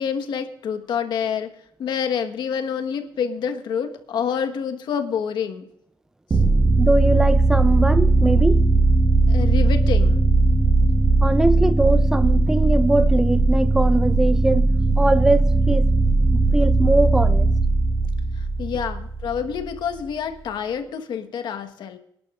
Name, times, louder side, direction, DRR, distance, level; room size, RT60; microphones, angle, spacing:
voice 1, 0.0-1.5 1.8-5.7 6.3-6.4 9.3-10.3 18.4-22.0, left 7 dB, 65° left, 1.4 m, -27 dB
sound 1, 6.3-19.7, right 2 dB, 30° right, 1.2 m, -18 dB
voice 2, 6.8-8.8 11.2-15.9 16.3-17.5, right 2 dB, 5° right, 0.5 m, -22 dB
25.5 x 11.0 x 2.5 m
cardioid pair, 135°, 8 cm